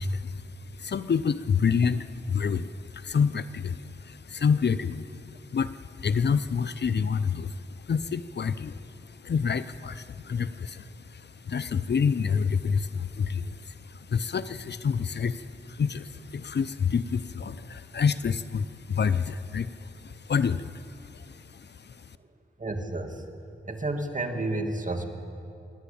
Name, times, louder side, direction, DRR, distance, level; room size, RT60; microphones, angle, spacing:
voice 1, 0.0-22.1, left 6 dB, 65° left, 14 dB, 0.7 m, -28 dB
voice 2, 22.6-23.2 23.7-25.0, right 2 dB, 45° right, 4 dB, 2.5 m, -31 dB
29.5 x 11.5 x 8.6 m, 2.5 s
cardioid pair, 50°, 19 cm